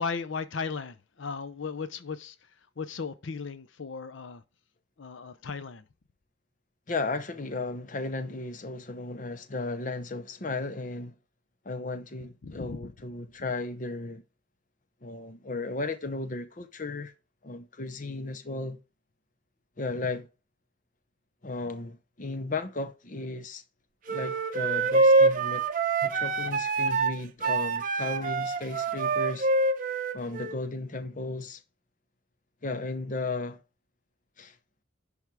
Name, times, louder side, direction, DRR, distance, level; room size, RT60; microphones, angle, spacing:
voice 1, 0.0-2.3 2.8-4.4 5.0-5.8 12.4-12.8, left 5 dB, 80° left, 0.7 m, -36 dB
voice 2, 6.9-11.1 11.6-14.2 15.0-17.1 17.4-18.8 19.8-20.3 21.4-23.6 24.1-25.7 26.0-29.5 30.1-31.6 32.6-33.6 34.4-34.5, left 3 dB, 40° left, 0.8 m, -35 dB
sound 1, 24.1-30.6, right 3 dB, 45° right, 0.8 m, -25 dB
10.5 x 3.6 x 4.7 m
head